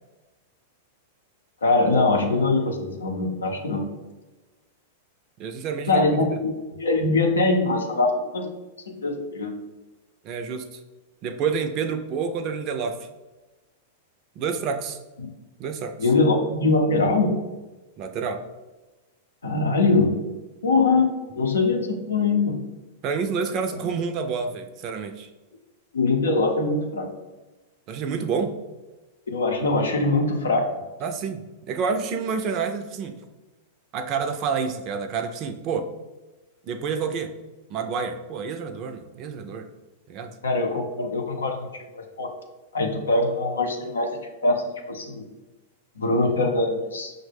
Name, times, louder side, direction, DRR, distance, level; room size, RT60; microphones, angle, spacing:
voice 1, 1.6-3.9 5.9-8.5 8.9-9.5 15.2-15.3 16.0-17.4 19.4-20.1 20.6-21.1 21.4-22.5 25.9-27.1 29.3-30.7 40.4-41.7 41.9-42.3 42.7-45.2 46.0-47.1, left 3 dB, 90° left, 2 dB, 0.6 m, -22 dB
voice 2, 5.4-6.1 10.2-10.8 11.2-13.0 14.4-15.0 15.6-15.9 18.0-18.4 23.0-25.3 27.9-28.6 31.0-33.2 33.9-35.9 36.7-37.3 37.7-39.7 40.1-40.3, right 5 dB, 45° right, 7 dB, 0.4 m, -28 dB
5.5 x 2.1 x 3.3 m, 1.1 s
hypercardioid pair, 110°, 0 cm